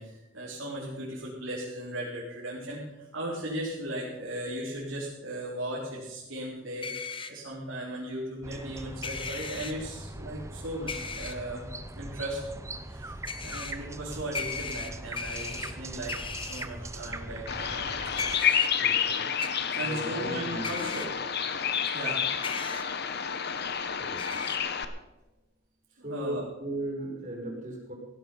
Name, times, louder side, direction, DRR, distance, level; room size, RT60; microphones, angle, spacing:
voice 1, 0.0-11.6 11.9-17.7 19.7-21.0 21.8-22.9 26.0-26.5, right 1 dB, 85° right, -6 dB, 3.9 m, -37 dB
sound 1, 6.8-7.3 9.0-9.7 10.9-11.3 13.3-13.7 14.3-15.7 16.1-16.6 18.2-18.7 19.4-19.5 20.6-21.1 22.4-22.8 24.2-24.6, left 5 dB, 25° left, 1.2 m, -36 dB
sound 2, 8.4-18.4, right 2 dB, 15° right, 0.8 m, -41 dB
Bird vocalization bird call bird song, 17.5-24.8, left 8 dB, 55° left, 1.1 m, -30 dB
voice 2, 18.8-19.3 19.8-21.1 24.0-24.3 26.0-27.9, right 1 dB, 40° right, 1 dB, 4.5 m, -36 dB
16.5 x 11.5 x 5.5 m, 1.1 s
head